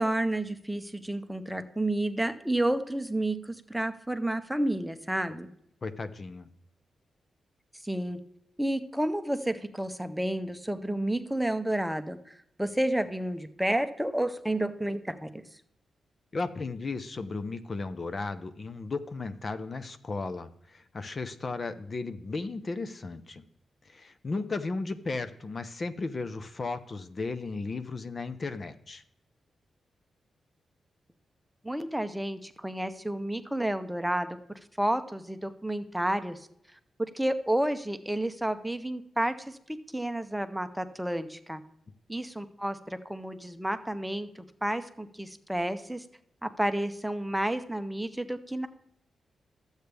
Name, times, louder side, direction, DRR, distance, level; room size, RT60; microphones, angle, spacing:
voice 1, 0.0-5.5 7.8-8.2 8.6-15.4 31.6-34.4 34.8-36.5 37.1-41.6 42.1-46.0 46.4-48.7, right 1 dB, 5° right, 9 dB, 0.8 m, -31 dB
voice 2, 5.8-6.5 16.3-23.4 23.8-29.0, left 3 dB, 40° left, 10 dB, 0.7 m, -35 dB
12.0 x 8.1 x 3.4 m, 0.73 s
cardioid pair, 80°, 0 cm